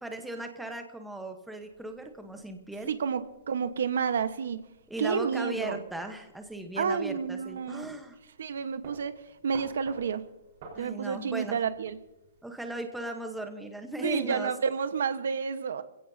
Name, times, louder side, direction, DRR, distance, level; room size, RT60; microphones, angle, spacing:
voice 1, 0.0-2.9 4.9-8.2 10.7-11.6 12.4-14.5, right 1 dB, ahead, 5 dB, 1.1 m, -37 dB
sound 1, 1.6-12.7, right 4 dB, 35° right, 4.4 m, -55 dB
voice 2, 2.9-4.6 5.0-5.8 6.8-7.9 8.4-9.1 9.4-10.2 10.8-12.0 14.0-15.8, right 6 dB, 70° right, 11 dB, 1.2 m, -30 dB
25.5 x 16.5 x 2.8 m, 0.95 s
hypercardioid pair, 175°, 0 cm